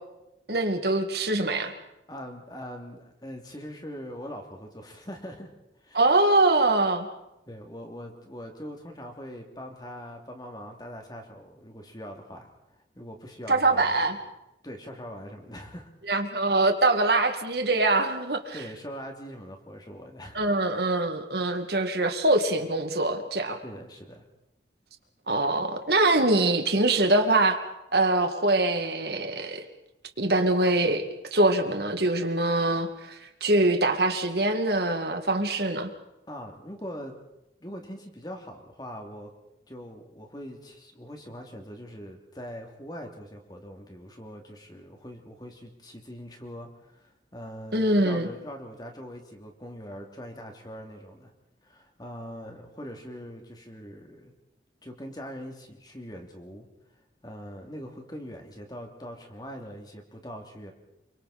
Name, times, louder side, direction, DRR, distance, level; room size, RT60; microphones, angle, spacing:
voice 1, 0.5-1.7 5.9-7.1 13.5-14.2 16.1-18.6 20.3-23.6 25.3-27.6 27.9-29.6 30.2-31.0 31.3-35.9 47.7-48.3, right 2 dB, 60° right, 5 dB, 2.4 m, -23 dB
voice 2, 2.1-5.5 5.8-6.0 7.5-12.5 12.9-13.9 14.6-15.9 18.5-20.4 23.6-24.2 36.3-37.1 37.6-39.3 39.7-51.3 51.6-54.3 54.8-56.7 57.2-60.7, equal, 20° left, 3 dB, 3.0 m, -42 dB
28.0 x 24.5 x 4.4 m, 0.89 s
head